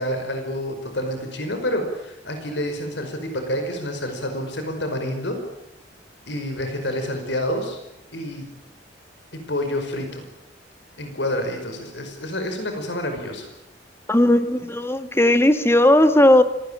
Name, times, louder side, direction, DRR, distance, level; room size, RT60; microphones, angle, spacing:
voice 1, 0.0-5.4 6.3-7.8 8.1-8.4 9.5-10.2 11.0-13.5, left 1 dB, 70° left, 6 dB, 5.3 m, -28 dB
voice 2, 14.1-16.4, left 1 dB, 15° left, 10 dB, 1.7 m, -16 dB
26.5 x 19.0 x 8.9 m, 0.86 s
head